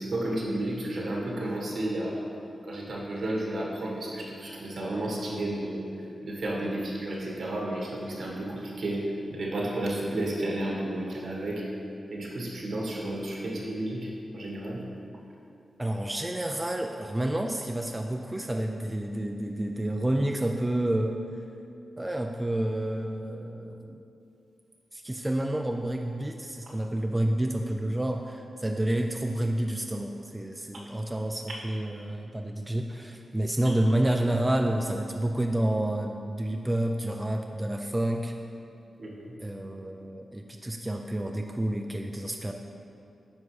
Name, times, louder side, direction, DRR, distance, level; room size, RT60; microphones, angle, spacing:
voice 1, 0.0-2.3 2.6-5.9 6.2-9.0 9.3-11.6 12.1-14.8 39.0-39.3, right 1 dB, 70° right, -3 dB, 1.4 m, -32 dB
voice 2, 15.8-21.2 22.0-24.0 24.9-38.3 39.4-42.5, right 1 dB, 15° right, 3 dB, 0.4 m, -29 dB
9.6 x 4.9 x 3.2 m, 2.6 s
cardioid pair, 75°, 0 cm